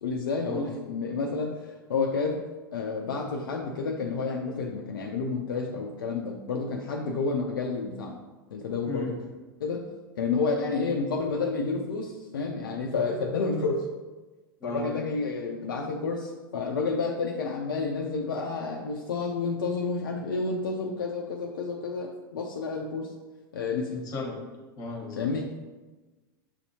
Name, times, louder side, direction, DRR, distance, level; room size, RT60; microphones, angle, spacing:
voice 1, 0.0-2.4 2.7-8.2 8.5-9.2 9.6-9.9 10.2-13.9 14.6-23.1 23.5-24.0 25.2-25.5, left 4 dB, 70° left, 1 dB, 0.4 m, -30 dB
voice 2, 23.9-24.4 24.8-25.3, left 2 dB, 35° left, 1 dB, 1.1 m, -35 dB
6.3 x 2.7 x 2.8 m, 1.2 s
figure-of-eight pair, 90°, 12 cm